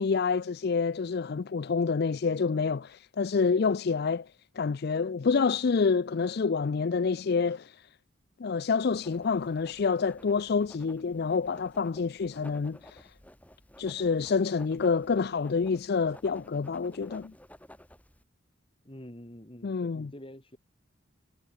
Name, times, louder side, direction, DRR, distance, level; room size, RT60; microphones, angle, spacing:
voice 1, 0.0-4.3 4.6-7.9 8.4-13.1 13.8-17.3 19.6-20.1, left 5 dB, 50° left, 0.4 m, -28 dB
Writing, 8.8-18.2, left 1 dB, 5° left, 5.8 m, -54 dB
voice 2, 18.8-20.6, equal, 25° left, 2.8 m, -47 dB
head